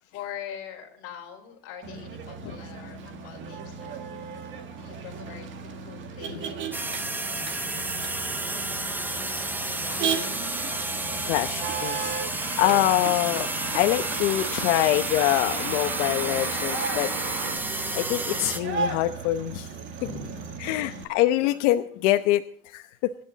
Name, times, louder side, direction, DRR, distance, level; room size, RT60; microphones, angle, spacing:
voice 1, 0.0-3.9 4.5-7.5 7.8-9.5 9.8-11.4 20.0-21.1, left 7 dB, 40° left, 1 dB, 4.8 m, -44 dB
Motor vehicle (road), 1.8-21.0, right 5 dB, 30° right, 1.9 m, -36 dB
sound 1, 6.7-18.6, right 2 dB, 5° right, 0.7 m, -31 dB
sound 2, 8.6-8.7 12.4-17.6, right 5 dB, 55° right, 4.9 m, -36 dB
voice 2, 11.3-12.1 12.6-13.5 13.7-17.1 18.0-19.7 20.6-23.1, left 15 dB, 75° left, 8 dB, 1.0 m, -24 dB
24.5 x 10.5 x 4.1 m, 0.62 s
cardioid pair, 180°, 37 cm